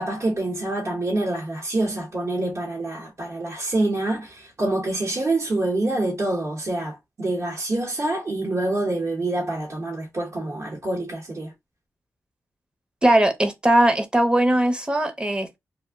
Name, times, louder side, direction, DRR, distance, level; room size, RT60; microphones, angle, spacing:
voice 1, 0.0-11.5, right 2 dB, 50° right, 0.9 m, -26 dB
voice 2, 13.0-15.6, right 1 dB, 15° right, 0.7 m, -19 dB
2.4 x 2.1 x 3.5 m
cardioid pair, 75°, 6 cm